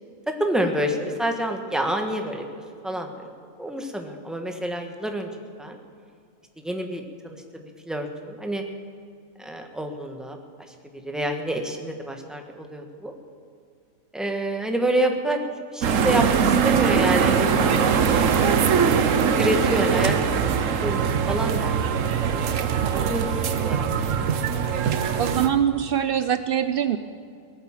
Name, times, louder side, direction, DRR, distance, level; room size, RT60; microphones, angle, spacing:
voice 1, 0.3-2.4 2.8-3.3 3.6-5.3 5.6-5.8 6.6-8.6 9.4-10.4 11.0-13.1 14.1-15.4 15.7-17.8 19.4-21.0 21.3-23.9 24.2-24.3, right 1 dB, ahead, 3 dB, 1.2 m, -28 dB
sound 1, 15.8-25.5, right 7 dB, 65° right, 1.2 m, -22 dB
voice 2, 25.2-27.0, right 9 dB, 85° right, 11 dB, 0.5 m, -23 dB
18.5 x 9.3 x 7.4 m, 2.3 s
omnidirectional pair, 1.5 m